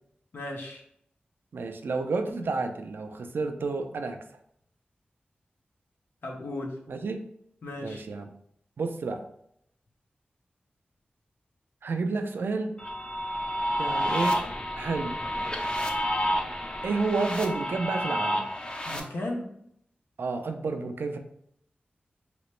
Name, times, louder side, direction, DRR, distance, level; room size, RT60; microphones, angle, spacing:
voice 1, 0.3-0.8 6.2-6.7 7.6-8.0 18.8-19.5, left 1 dB, 85° left, 0 dB, 0.7 m, -35 dB
voice 2, 1.5-4.2 6.9-7.2 7.8-8.3 8.8-9.2 11.8-12.7 13.8-14.4 14.7-15.2 16.8-18.5 20.2-21.2, right 3 dB, 80° right, 6 dB, 0.4 m, -30 dB
sound 1, 12.8-19.0, equal, 30° left, 0.5 m, -30 dB
3.0 x 2.9 x 3.0 m, 0.71 s
wide cardioid pair, 70°, 4 cm